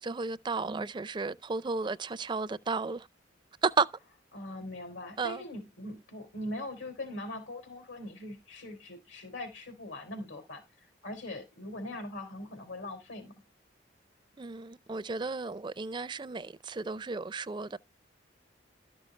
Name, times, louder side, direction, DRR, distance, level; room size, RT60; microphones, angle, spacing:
voice 1, 0.0-3.1 3.6-3.9 5.2-5.4 14.4-17.8, right 4 dB, 25° right, 0.4 m, -33 dB
voice 2, 4.3-13.3, left 1 dB, 90° left, 3.9 m, -41 dB
13.0 x 6.3 x 3.2 m
head